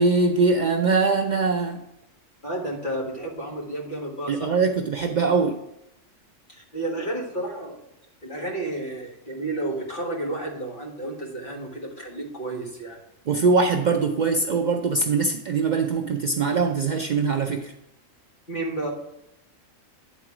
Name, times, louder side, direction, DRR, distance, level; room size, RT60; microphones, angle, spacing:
voice 1, 0.0-1.8 4.3-5.6 13.3-17.7, right 4 dB, 90° right, 4 dB, 0.4 m, -22 dB
voice 2, 2.4-4.5 6.5-7.8 8.2-13.0 18.5-18.9, right 1 dB, 40° left, -2 dB, 1.7 m, -31 dB
9.2 x 3.9 x 4.7 m, 0.83 s
omnidirectional pair, 1.4 m